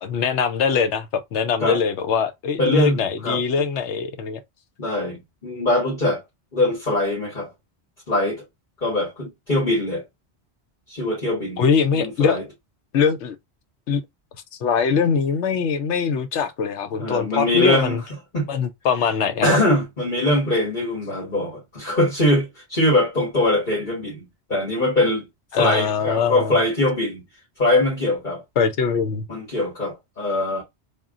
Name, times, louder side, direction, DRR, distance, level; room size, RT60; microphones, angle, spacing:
voice 1, 0.0-4.4 11.6-12.4 12.9-13.4 13.9-14.0 14.6-18.0 18.5-19.6 25.5-26.5 28.6-29.3, left 6 dB, 90° left, 1.0 m, -22 dB
voice 2, 2.6-3.4 4.8-6.2 6.5-7.5 8.1-8.4 8.8-10.0 10.9-11.6 12.0-12.4 17.0-18.0 18.3-18.5 19.4-25.2 25.5-27.2 27.6-28.4 29.3-30.6, left 1 dB, 45° left, 1.9 m, -22 dB
3.7 x 2.4 x 3.7 m
omnidirectional pair, 1.1 m